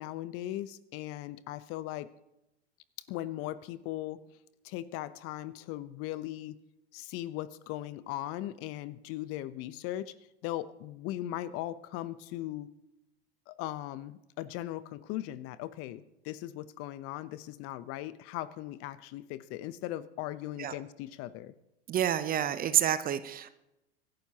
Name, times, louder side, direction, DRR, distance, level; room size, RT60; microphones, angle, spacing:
voice 1, 0.0-2.1 3.1-4.2 4.6-6.6 6.9-10.1 10.4-12.7 13.5-21.5, left 14 dB, 45° left, 16 dB, 0.8 m, -38 dB
voice 2, 21.9-23.5, right 10 dB, 25° right, 14 dB, 0.7 m, -28 dB
25.0 x 11.5 x 2.9 m, 0.90 s
hypercardioid pair, 95°, 32 cm